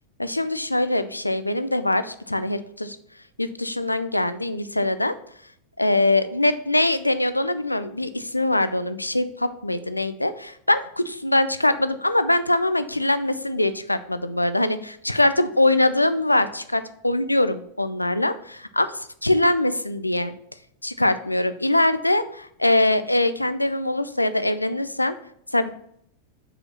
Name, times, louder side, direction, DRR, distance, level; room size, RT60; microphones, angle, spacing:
voice 1, 0.2-3.0 3.4-5.1 5.8-18.9 19.2-20.3 20.8-25.1 25.5-25.7, left 1 dB, 85° left, 12 dB, 0.4 m, -22 dB
5.0 x 4.7 x 5.5 m, 0.69 s
figure-of-eight pair, 90°, 0 cm